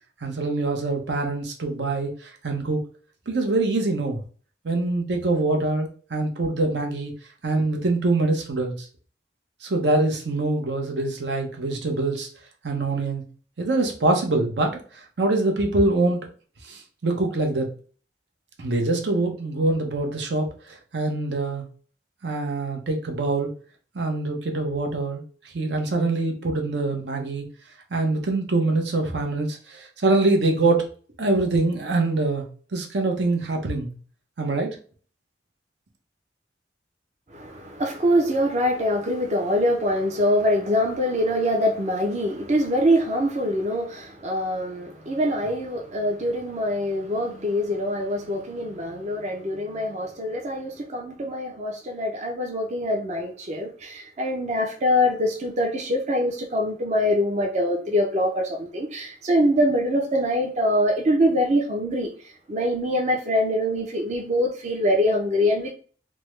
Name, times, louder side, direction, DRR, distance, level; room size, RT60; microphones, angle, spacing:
voice 1, 0.2-2.8 3.3-4.2 4.6-7.1 7.4-8.7 9.6-12.3 12.6-13.2 13.6-16.2 16.6-17.7 18.6-21.6 22.2-23.5 23.9-25.2 25.5-27.5 27.9-30.8 31.2-32.5 32.7-33.9 34.4-34.8, right 2 dB, 75° right, 3 dB, 0.7 m, -24 dB
voice 2, 37.3-62.1 62.5-65.7, equal, 40° right, 2 dB, 0.5 m, -24 dB
3.4 x 2.0 x 3.1 m, 0.41 s
head